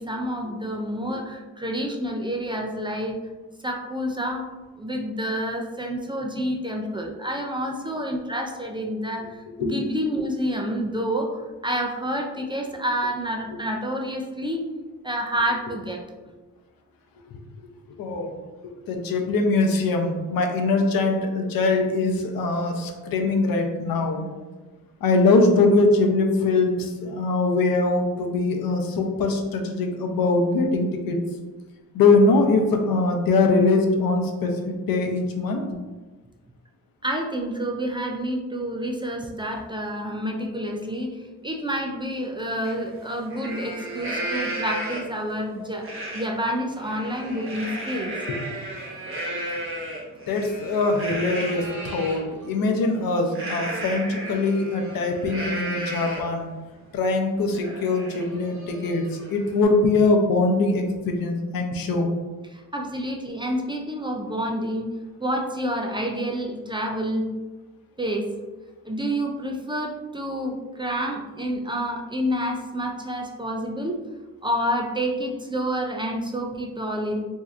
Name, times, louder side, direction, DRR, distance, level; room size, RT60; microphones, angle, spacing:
voice 1, 0.0-3.2 3.6-4.4 4.8-14.6 15.0-16.0 37.0-48.1 62.5-64.9 65.2-67.3 68.0-68.3 68.8-74.0 74.4-77.3, equal, 15° right, 1 dB, 0.3 m, -28 dB
voice 2, 18.0-18.4 18.9-24.2 25.0-31.2 31.9-35.6 48.3-48.4 50.3-56.5 56.9-62.1, left 3 dB, 85° left, 3 dB, 0.6 m, -22 dB
Livestock farm animals working animals, 42.6-42.7 43.2-45.2 45.8-46.2 46.6-52.2 53.3-56.4 56.8-56.9 57.3-59.6, right 1 dB, 40° right, 1.0 m, -33 dB
4.2 x 2.7 x 2.4 m, 1.2 s
cardioid pair, 110°, 34 cm